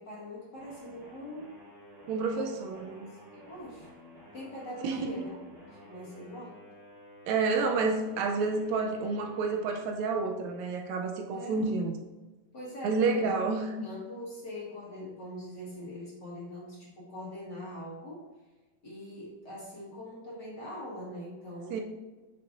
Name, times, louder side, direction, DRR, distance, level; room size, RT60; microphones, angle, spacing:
voice 1, 0.0-1.5 2.2-2.5 2.9-3.9 4.3-5.3 5.7-6.6 11.3-11.7 12.5-13.3 13.8-18.3 18.8-21.8, left 1 dB, 40° left, -6 dB, 2.1 m, -42 dB
sound 1, 0.6-10.8, left 1 dB, 40° right, 2.3 m, -53 dB
voice 2, 2.1-3.1 4.8-5.1 7.3-11.9 12.8-13.7 21.7-21.8, right 4 dB, 80° right, 3 dB, 1.9 m, -29 dB
7.8 x 6.7 x 2.6 m, 1.2 s
omnidirectional pair, 3.3 m